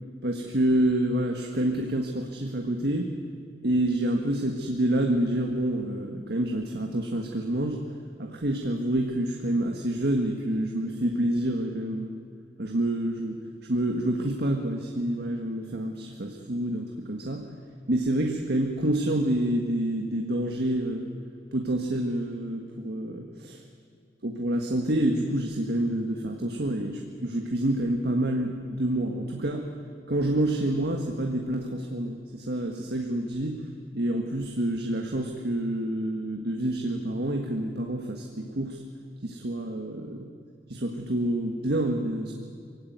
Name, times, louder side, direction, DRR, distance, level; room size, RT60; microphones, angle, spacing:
voice 1, 0.2-3.1 3.6-7.8 8.2-12.1 12.6-13.4 13.7-17.5 17.9-21.1 21.5-23.6 24.2-29.7 30.1-33.6 33.9-38.8 39.2-40.3 40.7-42.3, right 1 dB, 65° right, 3 dB, 1.6 m, -28 dB
23.0 x 16.5 x 9.5 m, 2.3 s
head